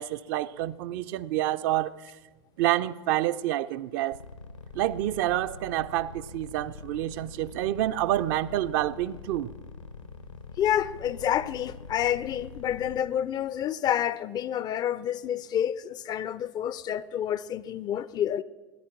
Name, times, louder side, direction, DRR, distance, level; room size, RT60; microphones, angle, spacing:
voice 1, 0.0-1.9 2.6-4.3 4.7-9.5, right 14 dB, 45° right, 0.4 m, -28 dB
sound 1, 4.1-13.0, left 4 dB, 90° left, 1.2 m, -44 dB
voice 2, 10.6-18.4, left 10 dB, 25° left, 0.4 m, -28 dB
17.0 x 10.5 x 5.9 m
figure-of-eight pair, 90°, 15 cm